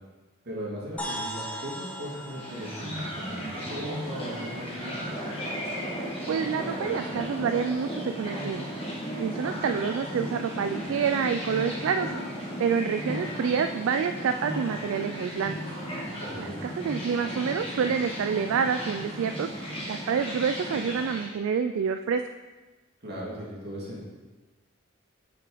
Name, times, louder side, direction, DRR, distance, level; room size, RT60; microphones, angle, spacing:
voice 1, 0.4-5.3 16.2-16.7 23.0-24.1, equal, 50° right, -5 dB, 2.3 m, -38 dB
sound 1, 1.0-4.7, right 1 dB, 5° left, 0.7 m, -39 dB
sound 2, 2.3-21.3, equal, 25° left, 2.1 m, -35 dB
voice 2, 6.3-8.7 9.2-12.1 12.6-15.6 16.4-19.5 19.9-22.2, right 6 dB, 70° right, 8 dB, 0.3 m, -28 dB
6.0 x 6.0 x 4.9 m, 1.2 s
head